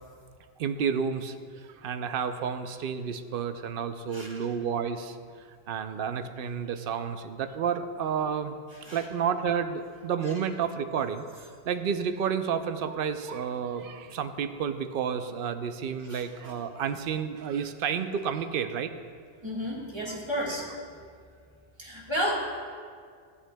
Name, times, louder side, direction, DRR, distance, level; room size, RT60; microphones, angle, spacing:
voice 1, 0.6-5.2 5.7-8.5 8.9-18.9 20.1-20.2, right 7 dB, 65° right, 9 dB, 0.7 m, -31 dB
voice 2, 19.4-20.6 21.8-22.6, equal, 25° right, -5 dB, 1.6 m, -32 dB
14.5 x 9.7 x 2.2 m, 2.1 s
omnidirectional pair, 1.1 m